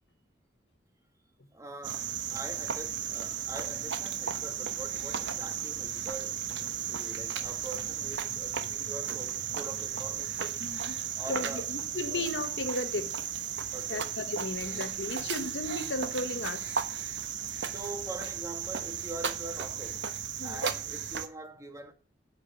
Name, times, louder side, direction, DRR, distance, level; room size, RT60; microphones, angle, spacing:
voice 1, 1.5-10.6 11.2-11.7 12.1-12.3 13.7-14.1 17.7-20.1 20.4-21.9, right 2 dB, 20° right, 2.1 m, -44 dB
Cricket, 1.8-21.3, right 8 dB, 80° right, 1.2 m, -35 dB
voice 2, 10.6-11.0 11.3-13.2 13.9-16.7 17.5-17.7 20.4-20.6, left 2 dB, 75° left, 1.3 m, -35 dB
8.3 x 8.1 x 8.2 m
head